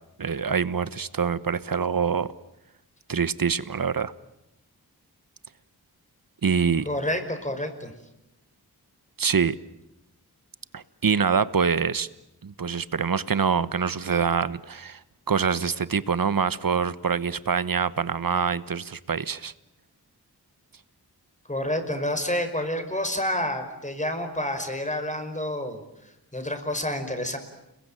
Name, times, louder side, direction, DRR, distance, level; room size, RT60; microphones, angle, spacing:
voice 1, 0.2-2.3 3.1-4.1 6.4-6.9 9.2-9.5 10.7-12.1 12.4-15.0 15.3-19.5, right 6 dB, 60° right, 16 dB, 1.2 m, -25 dB
voice 2, 6.9-7.9 21.5-25.8 26.3-27.4, left 1 dB, 20° left, 7 dB, 5.4 m, -29 dB
29.5 x 21.5 x 9.1 m, 0.89 s
cardioid pair, 50°, 38 cm